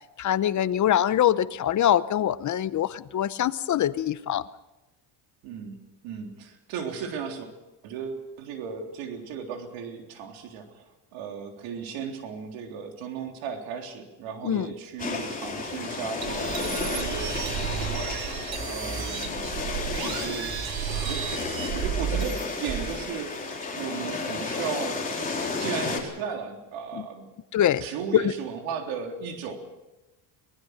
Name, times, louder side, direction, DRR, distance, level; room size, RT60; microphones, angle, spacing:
voice 1, 0.2-4.5 14.4-14.7 26.9-27.0 27.5-27.8 28.1-28.3, left 11 dB, 40° left, 16 dB, 0.8 m, -24 dB
voice 2, 5.4-7.5 7.8-10.8 11.1-18.4 18.6-19.4 20.0-20.5 20.9-21.5 21.7-23.4 23.8-25.0 25.5-27.3 27.8-29.6, right 6 dB, 85° right, 3 dB, 3.6 m, -36 dB
sound 1, 15.0-26.0, left 4 dB, 20° left, 4.1 m, -32 dB
sound 2, 16.2-23.0, right 8 dB, 50° right, 2.9 m, -32 dB
sound 3, 17.2-24.9, right 2 dB, 25° right, 4.7 m, -49 dB
23.0 x 19.5 x 6.5 m, 1.0 s
cardioid pair, 120°, 45 cm